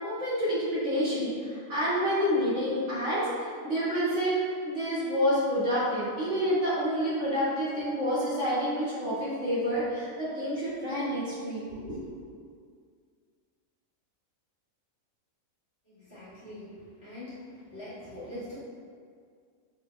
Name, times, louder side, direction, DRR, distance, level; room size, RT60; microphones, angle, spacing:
voice 1, 0.0-4.4 4.7-12.1, equal, 60° right, -11 dB, 1.9 m, -28 dB
voice 2, 16.1-17.4 17.7-18.6, left 1 dB, 50° left, -12 dB, 2.0 m, -42 dB
6.1 x 3.7 x 2.2 m, 2.1 s
omnidirectional pair, 1.4 m